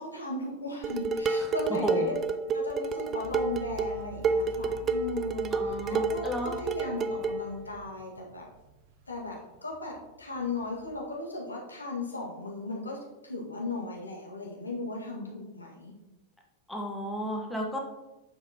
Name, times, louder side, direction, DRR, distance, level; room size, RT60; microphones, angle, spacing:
voice 1, 0.0-2.1 2.5-8.5 9.1-13.0 13.2-15.9, left 2 dB, 80° left, -2 dB, 1.8 m, -36 dB
Dishes pots and pans, 0.8-7.4, right 4 dB, 25° right, 0.5 m, -30 dB
sound 1, 3.2-11.0, right 4 dB, 50° right, 1.0 m, -48 dB
voice 2, 5.5-6.5 16.7-17.8, left 1 dB, 5° left, 0 dB, 1.2 m, -33 dB
8.9 x 7.2 x 2.9 m, 1.0 s
figure-of-eight pair, 90°, 0 cm